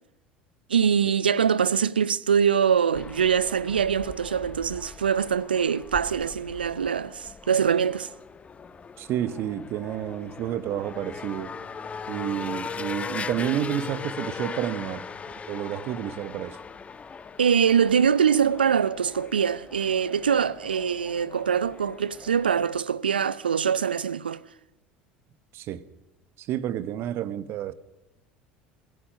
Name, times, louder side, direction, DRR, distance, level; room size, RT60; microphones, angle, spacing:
voice 1, 0.7-8.1 17.4-24.4, right 7 dB, 80° right, 0.7 m, -23 dB
sound 1, 2.9-22.8, left 5 dB, 25° left, 1.3 m, -40 dB
voice 2, 9.0-11.5 12.1-15.1 15.5-16.6 25.5-25.8 26.4-27.7, right 11 dB, 50° right, 1.3 m, -30 dB
26.5 x 16.0 x 6.5 m
figure-of-eight pair, 70°, 5 cm